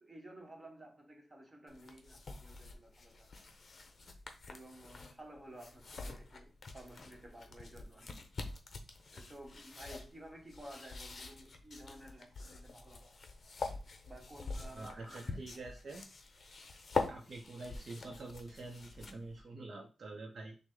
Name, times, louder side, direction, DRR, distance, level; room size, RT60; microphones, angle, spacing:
voice 1, 0.0-3.3 4.5-8.1 9.1-13.2 14.1-15.4, right 1 dB, 15° right, 1.2 m, -54 dB
sound 1, 1.7-19.4, left 4 dB, 45° left, 0.7 m, -45 dB
voice 2, 14.7-16.0 17.1-20.6, right 2 dB, 45° right, 0.6 m, -47 dB
6.0 x 2.1 x 3.8 m
wide cardioid pair, 115°, 0 cm